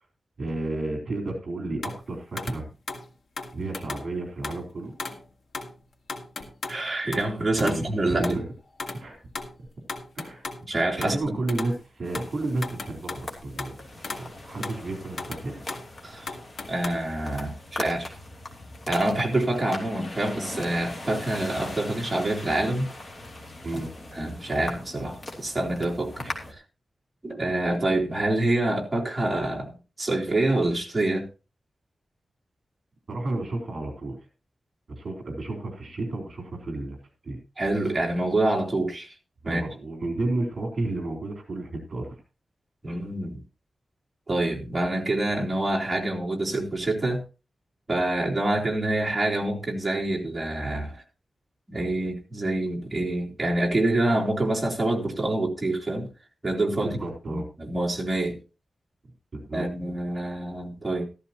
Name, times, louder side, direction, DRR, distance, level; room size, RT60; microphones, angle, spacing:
voice 1, 0.4-2.7 3.5-4.9 7.5-8.5 8.9-9.2 9.6-9.7 10.2-10.5 11.0-15.6 23.6-23.9 33.1-34.2 34.9-37.0 37.2-37.4 39.4-42.2 56.8-57.4 59.3-59.7, right 2 dB, 45° right, 3 dB, 3.7 m, -32 dB
sound 1, 1.8-2.0 2.4-2.6 2.9-3.1 3.4-4.1 4.4-4.6 5.0-5.2 5.5-5.8 6.1-6.8 7.1-7.3 7.6-7.9 8.2-8.4 8.8-9.1 9.3-10.7 11.0-11.8 12.1-13.8 14.0-14.3 14.6-14.8 15.2-15.9 16.3-16.9, left 3 dB, 85° left, 2.3 m, -36 dB
voice 2, 6.7-8.4 10.7-11.4 16.0-16.3 16.7-18.1 18.9-22.9 24.1-26.3 27.2-29.7 30.0-31.3 37.6-39.1 39.4-39.6 42.8-43.4 44.3-47.2 47.9-51.0 51.7-56.1 56.4-57.0 57.3-58.4 59.5-61.1, right 1 dB, 15° right, -2 dB, 3.3 m, -26 dB
sound 2, 12.0-26.5, left 2 dB, 35° left, 3.0 m, -40 dB
14.0 x 13.5 x 2.9 m, 0.30 s
wide cardioid pair, 165°, 0 cm